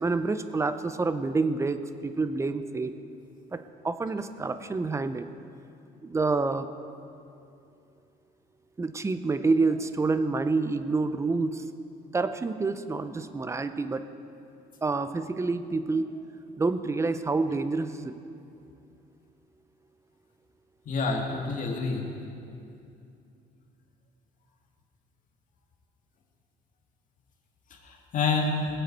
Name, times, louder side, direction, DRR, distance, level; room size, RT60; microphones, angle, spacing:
voice 1, 0.0-2.9 3.5-5.3 6.0-6.7 8.8-11.6 12.1-14.0 14.8-16.1 16.6-18.2, right 3 dB, 15° right, 11 dB, 0.6 m, -28 dB
voice 2, 20.9-22.0 27.7-28.7, left 4 dB, 50° left, 0 dB, 2.2 m, -28 dB
20.0 x 8.0 x 4.6 m, 2.7 s
cardioid pair, 110°, 17 cm